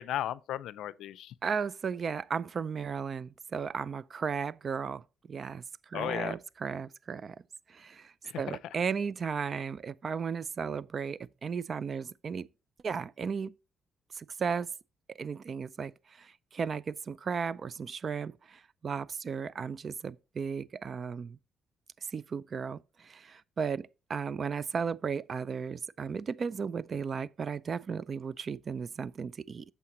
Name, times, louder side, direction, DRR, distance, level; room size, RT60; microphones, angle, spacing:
voice 1, 0.0-1.3 5.9-6.4 8.2-8.6, left 12 dB, 80° left, 0.4 m, -35 dB
voice 2, 1.4-7.4 7.7-12.5 12.8-13.5 14.1-14.7 15.1-21.4 22.1-29.6, right 6 dB, 45° right, 0.4 m, -35 dB
8.4 x 6.8 x 3.0 m
cardioid pair, 90°, 0 cm